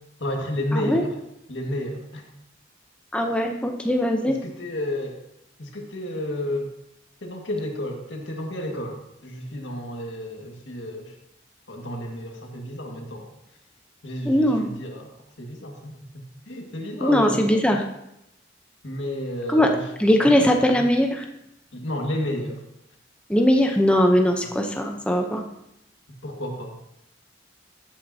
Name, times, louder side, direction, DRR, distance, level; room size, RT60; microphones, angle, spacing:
voice 1, 0.2-1.1 1.5-2.2 4.3-5.2 5.6-6.7 7.2-11.1 11.7-13.3 14.0-15.1 15.4-17.4 18.8-19.8 20.2-20.4 21.7-22.6 24.4-24.5 26.1-26.7, left 1 dB, 85° left, 1 dB, 1.9 m, -31 dB
voice 2, 0.7-1.0 3.1-4.4 14.2-14.7 17.0-17.8 19.5-21.3 23.3-25.5, equal, 5° left, 2 dB, 0.7 m, -20 dB
15.0 x 8.6 x 2.8 m, 0.82 s
head